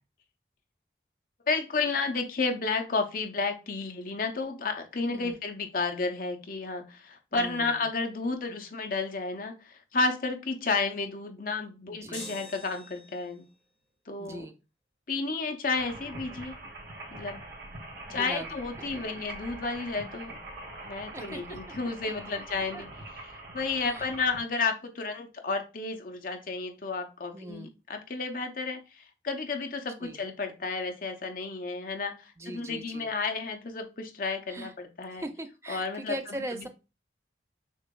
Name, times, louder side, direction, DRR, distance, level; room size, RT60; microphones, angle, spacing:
voice 1, 1.5-13.5 14.1-14.5 15.1-16.6 17.1-17.4 18.1-20.4 20.8-35.2 35.7-36.7, left 4 dB, 50° left, 5 dB, 0.7 m, -32 dB
voice 2, 7.3-7.7 11.9-12.2 14.2-14.5 18.1-18.6 18.9-19.2 21.1-21.8 22.0-22.1 22.7-22.8 23.8-24.1 27.3-27.7 30.0-30.2 32.4-33.1 34.5-34.7 35.1-36.7, right 1 dB, 15° right, 7 dB, 0.4 m, -40 dB
sound 1, 12.1-13.4, left 1 dB, 10° left, 2.0 m, -44 dB
sound 2, 15.7-24.4, right 2 dB, 60° right, 1.9 m, -43 dB
6.3 x 3.0 x 2.3 m, 0.29 s
head